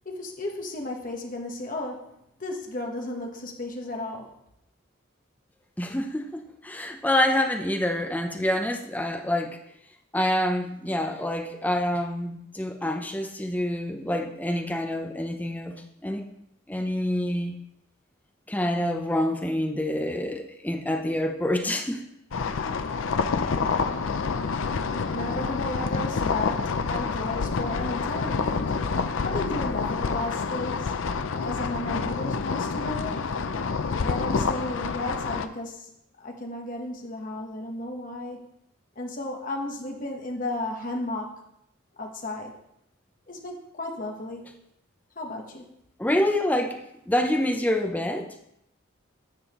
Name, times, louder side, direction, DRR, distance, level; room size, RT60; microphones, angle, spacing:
voice 1, 0.0-2.1 2.4-4.3 25.1-28.7 29.2-31.0 31.3-33.3 34.0-35.9 36.2-38.5 39.0-41.3 42.0-42.5 43.3-44.5 45.2-45.7, left 2 dB, 40° left, 1 dB, 1.2 m, -34 dB
voice 2, 5.8-9.6 10.1-15.7 16.0-16.2 16.7-17.6 18.5-22.0 46.0-48.3, left 1 dB, 10° left, 2 dB, 0.6 m, -27 dB
sound 1, 22.3-35.5, left 5 dB, 70° left, 0.5 m, -28 dB
10.0 x 7.1 x 3.0 m, 0.79 s
head